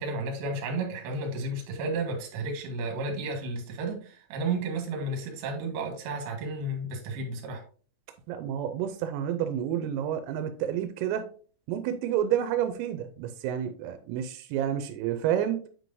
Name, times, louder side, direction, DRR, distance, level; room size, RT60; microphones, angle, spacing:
voice 1, 0.0-7.6, right 2 dB, 65° right, 2 dB, 3.4 m, -32 dB
voice 2, 8.3-11.3 11.7-15.6, right 10 dB, 90° right, 8 dB, 3.3 m, -29 dB
9.2 x 4.6 x 2.6 m, 0.42 s
omnidirectional pair, 5.8 m